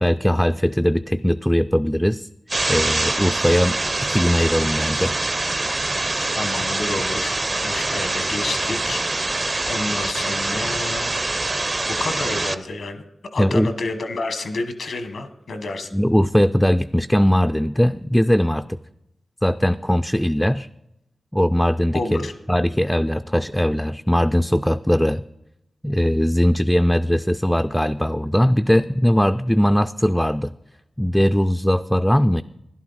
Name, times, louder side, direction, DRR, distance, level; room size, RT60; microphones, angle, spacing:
voice 1, 0.0-2.3 2.7-3.8 4.1-5.1 13.4-13.7 15.9-18.7 19.4-20.7 21.3-22.2 22.5-25.2 25.8-30.5 31.0-32.4, equal, 5° left, 9 dB, 0.3 m, -19 dB
sound 1, 2.5-12.5, right 2 dB, 40° right, 0.6 m, -24 dB
voice 2, 6.3-9.3 9.6-11.1 11.9-13.0 13.3-15.9 21.9-22.3, left 2 dB, 85° left, 9 dB, 1.1 m, -29 dB
12.5 x 11.0 x 4.0 m, 0.86 s
cardioid pair, 50°, 0 cm